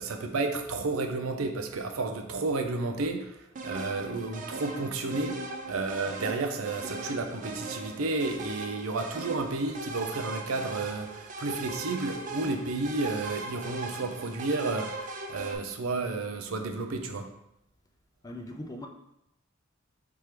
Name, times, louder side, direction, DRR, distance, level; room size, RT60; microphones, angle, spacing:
voice 1, 0.0-3.3 3.6-5.4 5.7-17.3, right 3 dB, 85° right, 6 dB, 0.6 m, -31 dB
sound 1, 3.5-15.5, right 3 dB, 40° right, 0.5 m, -39 dB
voice 2, 18.2-18.9, left 1 dB, 20° left, 3 dB, 0.4 m, -39 dB
4.4 x 3.5 x 3.3 m, 0.81 s
head